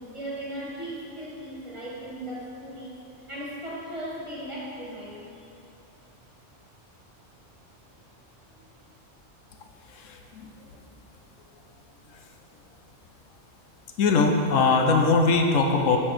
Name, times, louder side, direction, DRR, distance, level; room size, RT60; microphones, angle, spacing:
voice 1, 0.0-3.0 3.3-5.3 8.5-8.7, right 1 dB, 25° right, -7 dB, 1.9 m, -37 dB
voice 2, 9.9-10.5 14.0-16.0, left 4 dB, 80° left, 3 dB, 1.1 m, -21 dB
9.6 x 4.6 x 6.1 m, 2.8 s
omnidirectional pair, 1.3 m